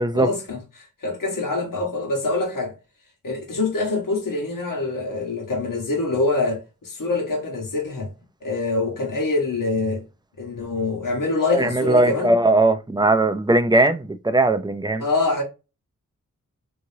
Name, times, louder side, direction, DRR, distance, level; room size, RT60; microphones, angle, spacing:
voice 1, 0.1-2.7 3.2-8.1 8.4-10.0 10.4-12.3 15.0-15.4, left 3 dB, 75° left, 1.4 m, -25 dB
voice 2, 11.5-15.0, right 2 dB, 15° right, 0.5 m, -19 dB
3.5 x 3.0 x 2.7 m
cardioid pair, 45°, 33 cm